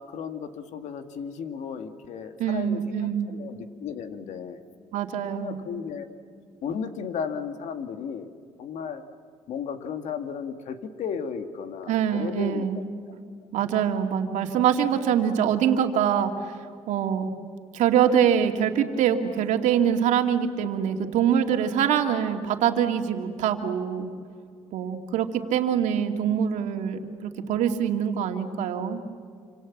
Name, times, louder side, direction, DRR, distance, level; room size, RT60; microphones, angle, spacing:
voice 1, 0.0-4.6 5.3-6.1 6.6-8.3 8.6-9.0 9.5-12.7, left 6 dB, 70° left, 7 dB, 2.2 m, -34 dB
voice 2, 2.4-3.3 4.9-5.6 11.9-12.8 13.5-16.5 16.9-17.3 17.7-24.1 24.7-29.0, right 8 dB, 80° right, 4 dB, 2.5 m, -24 dB
27.5 x 26.5 x 7.4 m, 2.2 s
cardioid pair, 115°, 12 cm